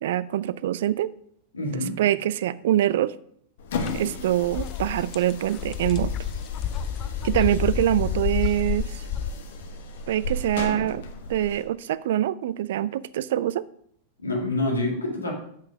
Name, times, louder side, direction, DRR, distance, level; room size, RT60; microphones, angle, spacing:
voice 1, 0.0-1.1 1.7-3.2 3.9-6.1 7.2-9.0 10.1-11.0 11.3-13.7, right 12 dB, 55° right, 18 dB, 0.3 m, -24 dB
voice 2, 1.5-2.0 14.2-15.3, left 2 dB, 75° left, 0 dB, 2.0 m, -26 dB
sound 1, 3.6-11.7, left 2 dB, 55° left, 1.1 m, -36 dB
sound 2, 3.8-3.9 4.3-9.3, left 9 dB, 30° left, 0.5 m, -29 dB
7.5 x 6.0 x 5.0 m, 0.67 s
figure-of-eight pair, 90°, 0 cm